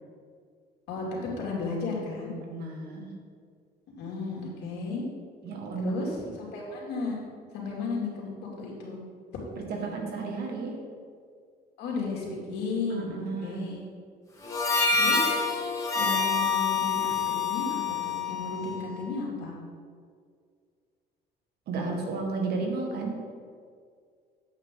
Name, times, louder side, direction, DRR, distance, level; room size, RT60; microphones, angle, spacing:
voice 1, 0.9-2.3 3.9-5.0 5.8-7.2 7.5-8.3 8.6-9.0 9.5-9.9 11.8-13.8 14.9-15.4 15.9-19.5, left 3 dB, 85° left, -3 dB, 2.4 m, -34 dB
voice 2, 2.5-3.1 5.4-5.9 6.2-6.3 9.8-10.8 12.9-13.8 21.7-23.2, right 3 dB, 70° right, 2 dB, 1.6 m, -33 dB
Harmonica, 14.4-19.0, left 4 dB, 20° left, 2.0 m, -27 dB
8.2 x 7.9 x 3.7 m, 2.1 s
cardioid pair, 110°, 17 cm